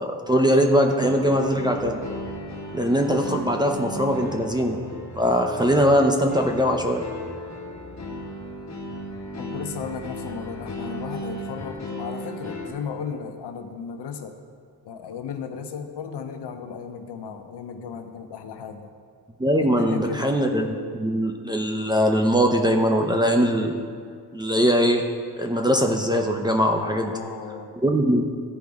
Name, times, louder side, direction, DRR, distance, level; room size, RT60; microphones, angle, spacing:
voice 1, 0.0-2.0 2.7-4.8 5.2-7.0 19.4-23.8 24.3-25.0 25.4-27.1 27.8-28.2, equal, 10° right, 2 dB, 0.7 m, -21 dB
sound 1, 1.0-12.7, left 1 dB, 40° left, 1.5 m, -36 dB
voice 2, 9.4-14.4 14.8-18.9 19.6-20.3 26.9-27.7, left 6 dB, 75° left, 6 dB, 0.9 m, -35 dB
15.0 x 5.1 x 3.5 m, 2.2 s
cardioid pair, 110°, 41 cm